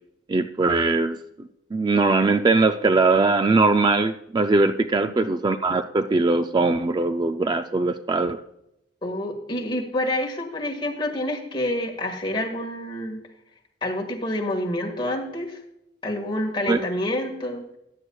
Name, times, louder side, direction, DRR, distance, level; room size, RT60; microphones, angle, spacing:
voice 1, 0.3-8.4 16.7-16.8, right 3 dB, 25° right, 8 dB, 0.4 m, -21 dB
voice 2, 5.0-5.3 9.0-13.2 13.8-15.6 16.0-17.7, left 1 dB, 30° left, 1 dB, 1.7 m, -28 dB
14.5 x 10.0 x 2.3 m, 0.82 s
head